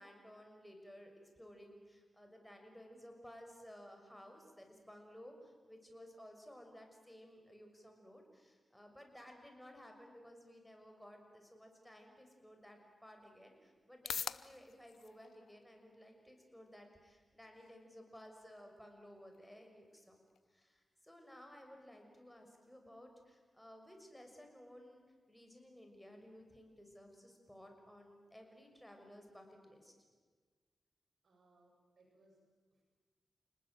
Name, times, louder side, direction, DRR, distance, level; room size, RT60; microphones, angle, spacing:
voice 1, 0.0-20.2 20.5-25.0 25.3-29.9, equal, 5° left, 3 dB, 6.2 m, -57 dB
sound 1, 12.6-29.5, left 7 dB, 85° left, 0.7 m, -54 dB
voice 2, 31.2-32.8, right 2 dB, 75° right, 0 dB, 7.7 m, -70 dB
29.5 x 19.5 x 9.2 m, 1.5 s
cardioid pair, 75°, 0 cm